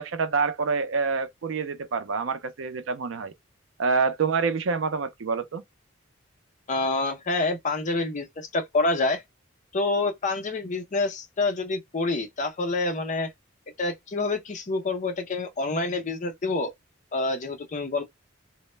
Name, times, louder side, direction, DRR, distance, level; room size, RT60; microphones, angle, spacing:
voice 1, 0.0-3.3 3.8-5.6, right 5 dB, 70° right, 0.5 m, -27 dB
voice 2, 6.7-9.2 9.7-13.3 13.8-16.7 17.1-18.0, left 3 dB, 40° left, 0.5 m, -27 dB
2.1 x 2.0 x 3.1 m
head